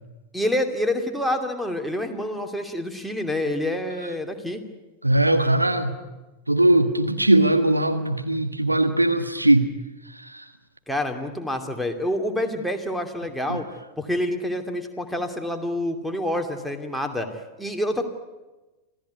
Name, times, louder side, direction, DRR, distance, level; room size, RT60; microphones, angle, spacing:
voice 1, 0.3-4.6 10.9-13.6 14.0-17.3 17.6-18.0, left 1 dB, ahead, 3 dB, 2.7 m, -27 dB
voice 2, 5.0-5.9 6.5-9.7 13.5-13.6, right 1 dB, 85° right, 7 dB, 1.5 m, -19 dB
26.5 x 16.5 x 9.6 m, 1.1 s
figure-of-eight pair, 90°, 0 cm